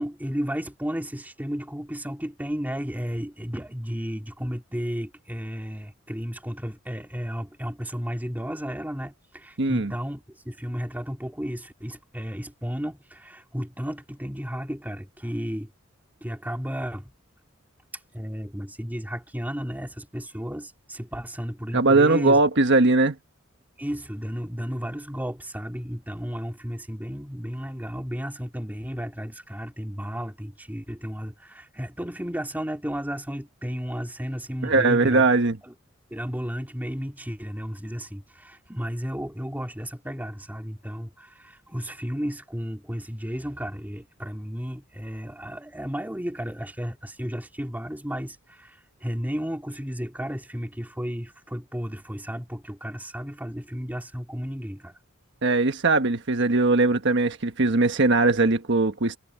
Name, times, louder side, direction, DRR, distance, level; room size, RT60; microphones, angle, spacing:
voice 1, 0.0-15.7 16.2-17.1 18.1-22.4 23.8-35.3 35.6-35.7 36.1-55.0, equal, 10° right, 2.7 m, -33 dB
voice 2, 9.6-9.9 21.7-23.1 34.6-35.6 55.4-59.2, right 3 dB, 60° right, 1.3 m, -20 dB
head